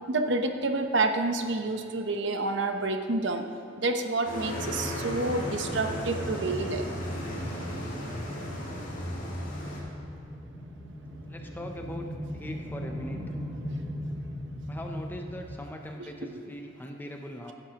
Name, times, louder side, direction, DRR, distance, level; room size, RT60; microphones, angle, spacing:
voice 1, 0.1-3.4 3.8-6.9 16.0-16.1, right 2 dB, 65° right, 6 dB, 0.8 m, -28 dB
sound 1, 4.2-9.8, left 1 dB, 75° left, 3.3 m, -35 dB
sound 2, 4.5-15.6, equal, 20° right, 2.4 m, -39 dB
voice 2, 11.3-12.1 12.3-13.2 14.7-17.5, left 1 dB, 10° left, 3 dB, 0.5 m, -40 dB
16.0 x 11.5 x 2.9 m, 2.5 s
head